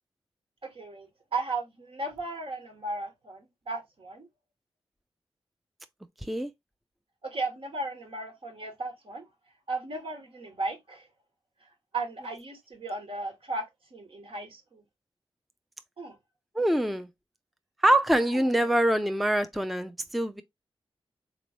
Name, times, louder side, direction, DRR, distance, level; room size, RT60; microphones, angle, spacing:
voice 1, 0.6-4.3 7.2-9.2 9.7-11.0 11.9-13.7 13.9-14.8 16.0-16.1, right 3 dB, 65° right, 1.3 m, -35 dB
voice 2, 16.5-17.1 17.8-20.4, right 1 dB, ahead, 0.4 m, -24 dB
3.7 x 3.0 x 2.9 m
cardioid pair, 65°, 10 cm